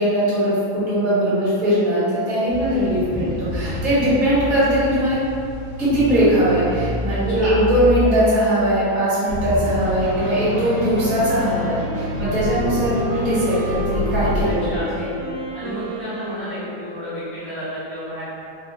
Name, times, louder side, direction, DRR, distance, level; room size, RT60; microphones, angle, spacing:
voice 1, 0.0-5.2 5.8-15.1, right 1 dB, 50° right, -11 dB, 1.7 m, -20 dB
sound 1, 2.5-8.1, left 2 dB, 25° left, 0.3 m, -29 dB
voice 2, 7.1-7.6 14.6-14.9 15.5-18.3, equal, 55° left, -16 dB, 1.4 m, -32 dB
sound 2, 9.3-14.5, left 1 dB, 70° left, 1.4 m, -27 dB
Wind instrument woodwind instrument, 10.0-17.2, right 1 dB, 75° right, 1.0 m, -31 dB
3.4 x 2.2 x 2.9 m, 2.5 s
omnidirectional pair, 2.1 m